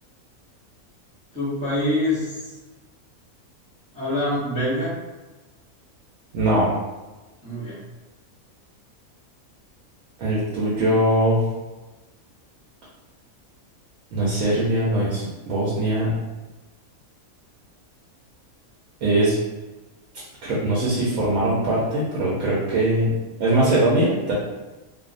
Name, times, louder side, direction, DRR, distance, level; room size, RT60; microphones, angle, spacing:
voice 1, 1.3-2.5 3.9-4.9 7.4-7.8, left 1 dB, 5° left, -8 dB, 0.6 m, -25 dB
voice 2, 6.3-6.7 10.2-11.4 14.1-16.1 19.0-19.4 20.4-23.1 23.4-24.3, right 1 dB, 70° right, -6 dB, 1.0 m, -21 dB
2.8 x 2.0 x 2.4 m, 1.1 s
omnidirectional pair, 1.5 m